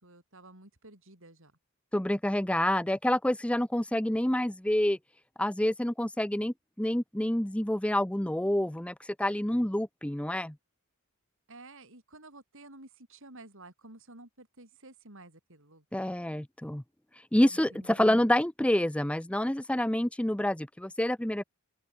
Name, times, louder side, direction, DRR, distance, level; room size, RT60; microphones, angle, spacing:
voice 1, 0.0-1.6 11.5-16.0 17.5-18.1, right 2 dB, 65° right, 7.5 m, -52 dB
voice 2, 1.9-5.0 5.4-10.5 15.9-16.8 17.3-21.4, left 1 dB, 5° left, 0.7 m, -28 dB
open air
head